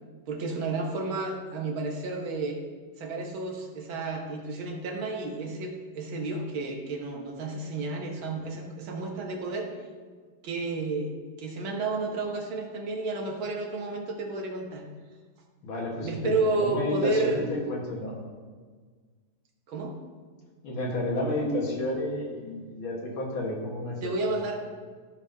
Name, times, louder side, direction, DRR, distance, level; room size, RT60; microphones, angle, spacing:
voice 1, 0.3-2.6 3.0-9.7 10.4-14.8 16.0-17.5 19.7-19.9 24.0-24.6, right 3 dB, 70° right, 1 dB, 1.8 m, -31 dB
voice 2, 15.6-18.1 20.6-24.3, left 1 dB, 70° left, -2 dB, 2.2 m, -31 dB
13.5 x 5.6 x 2.7 m, 1.5 s
omnidirectional pair, 2.4 m